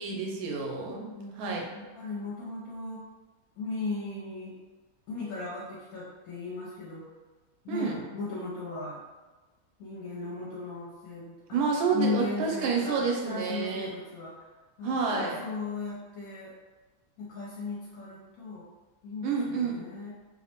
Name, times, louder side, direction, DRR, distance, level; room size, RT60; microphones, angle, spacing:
voice 1, 0.0-1.1 1.4-1.7 7.7-8.0 11.5-13.9 14.8-15.4 19.2-19.8, right 5 dB, 80° right, -1 dB, 1.0 m, -29 dB
voice 2, 1.7-3.0 3.6-4.6 5.1-7.1 7.6-9.0 9.8-11.6 11.9-14.5 14.8-16.5 17.2-18.6 19.0-20.1, left 3 dB, 75° left, -6 dB, 1.0 m, -36 dB
2.6 x 2.1 x 2.9 m, 1.3 s
omnidirectional pair, 1.6 m